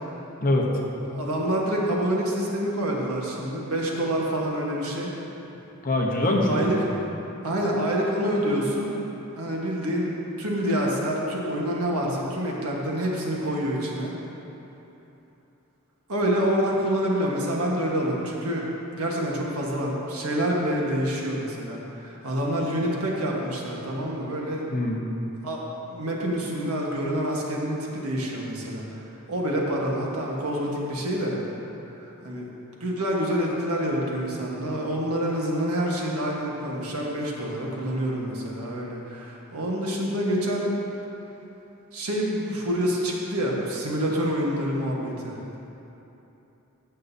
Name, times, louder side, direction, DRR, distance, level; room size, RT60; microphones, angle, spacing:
voice 1, 1.1-5.1 6.5-6.9 7.4-8.9 9.4-10.1 10.4-14.1 16.1-18.7 18.9-24.6 25.4-28.8 29.3-31.4 32.0-32.5 32.8-40.7 41.9-45.4, equal, 80° right, -2 dB, 1.4 m, -27 dB
voice 2, 5.8-6.8 24.7-25.0, left 1 dB, 40° left, -1 dB, 1.0 m, -23 dB
14.5 x 6.4 x 2.7 m, 3.0 s
head